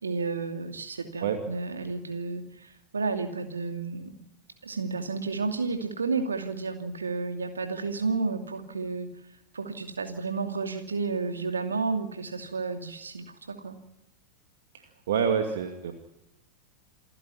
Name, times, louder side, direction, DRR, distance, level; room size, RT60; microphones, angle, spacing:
voice 1, 0.0-4.1 4.6-9.1 9.5-13.8, right 4 dB, 75° right, 6 dB, 2.6 m, -31 dB
voice 2, 14.7-15.9, right 7 dB, 60° right, 5 dB, 2.3 m, -27 dB
28.5 x 10.5 x 9.8 m, 0.92 s
figure-of-eight pair, 90°, 0 cm